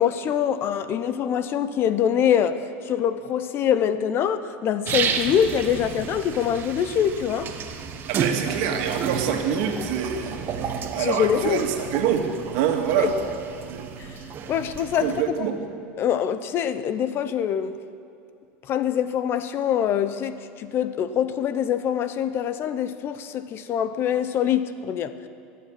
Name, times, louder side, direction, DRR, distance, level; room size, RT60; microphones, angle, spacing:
voice 1, 0.0-7.5 11.0-11.6 13.0-13.1 14.5-15.1 15.4-15.5 16.0-17.8 18.7-25.1, left 9 dB, 45° left, 0.8 m, -24 dB
sound 1, 4.9-15.2, right 7 dB, 40° right, 1.2 m, -31 dB
voice 2, 8.1-13.1 13.7-13.9 14.9-15.6, right 8 dB, 70° right, 1.9 m, -26 dB
17.0 x 7.5 x 9.6 m
supercardioid pair, 115°, 6 cm